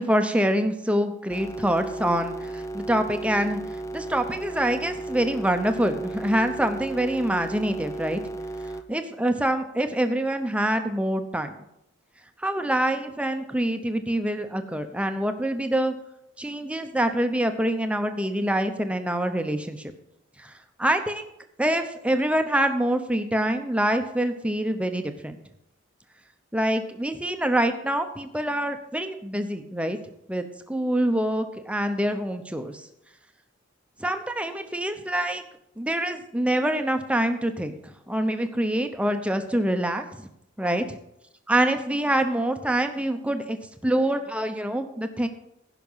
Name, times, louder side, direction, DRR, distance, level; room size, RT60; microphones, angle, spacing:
voice 1, 0.0-3.6 3.9-8.2 8.9-11.5 12.4-15.9 16.4-19.9 20.4-20.5 20.8-21.3 21.6-25.4 26.5-30.0 30.3-32.9 34.0-35.4 35.8-40.3 40.6-41.0 41.5-43.6 43.8-45.3, right 1 dB, 5° right, 7 dB, 0.8 m, -25 dB
sound 1, 1.3-8.8, right 2 dB, 15° left, 0.5 m, -35 dB
15.5 x 5.9 x 5.6 m, 0.81 s
head